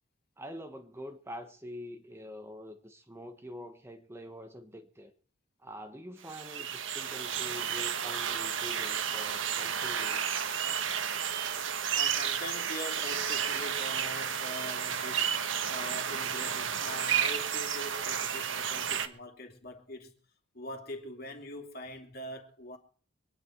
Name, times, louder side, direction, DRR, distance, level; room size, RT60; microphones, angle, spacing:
voice 1, 0.4-5.1 5.6-10.4, equal, 10° right, 1.2 m, -45 dB
sound 1, 6.2-19.1, right 8 dB, 65° right, 1.4 m, -32 dB
voice 2, 11.6-20.1 20.5-22.8, left 1 dB, 45° left, 2.9 m, -43 dB
25.0 x 10.5 x 4.5 m
head